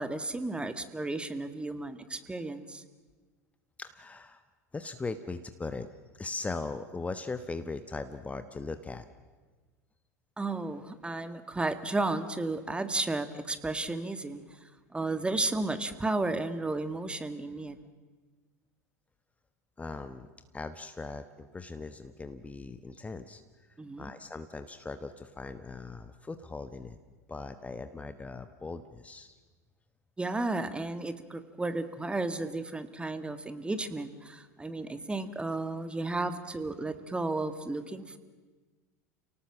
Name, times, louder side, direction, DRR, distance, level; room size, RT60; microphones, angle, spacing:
voice 1, 0.0-2.8 10.4-14.6 14.9-17.8 23.8-24.1 30.2-38.2, right 2 dB, 10° right, 11 dB, 1.7 m, -33 dB
voice 2, 3.8-4.4 4.7-5.9 6.1-9.1 19.8-20.3 20.5-23.4 24.0-27.0 27.3-29.4, left 3 dB, 15° left, 10 dB, 1.2 m, -39 dB
29.0 x 18.5 x 7.4 m, 1.3 s
hypercardioid pair, 85°, 9 cm